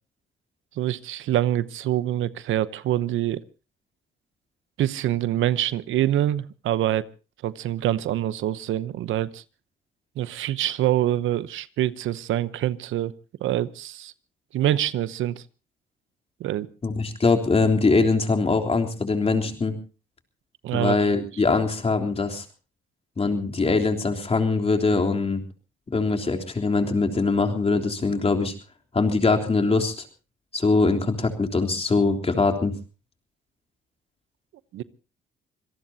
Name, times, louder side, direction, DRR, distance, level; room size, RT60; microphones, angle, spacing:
voice 1, 0.8-3.4 4.8-7.1 7.4-9.4 10.2-13.1 13.4-14.1 14.5-15.4 16.4-16.7 20.6-21.0 34.7-34.8, right 12 dB, 80° right, 16 dB, 0.8 m, -25 dB
voice 2, 16.8-19.8 20.7-22.4 23.2-25.4 25.9-28.5 28.9-30.0 30.5-32.7, left 3 dB, 30° left, 4 dB, 3.5 m, -22 dB
26.0 x 18.0 x 2.8 m, 0.34 s
cardioid pair, 90°, 20 cm